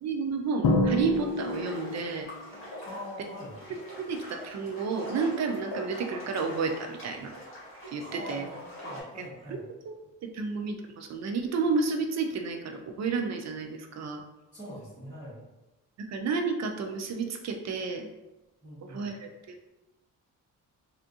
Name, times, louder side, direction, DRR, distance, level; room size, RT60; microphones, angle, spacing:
voice 1, 0.0-2.3 4.0-7.3 7.9-8.5 9.1-14.2 16.0-18.1 18.8-19.7, right 4 dB, 55° right, 5 dB, 0.4 m, -31 dB
Drum, 0.6-2.3, left 2 dB, 65° left, 0.6 m, -27 dB
sound 1, 0.9-9.0, equal, 40° left, 1.4 m, -44 dB
voice 2, 2.8-3.5 7.9-9.6 14.5-15.4 18.6-19.0, left 1 dB, 10° left, -15 dB, 1.5 m, -43 dB
3.4 x 2.5 x 2.7 m, 1.0 s
cardioid pair, 140°, 32 cm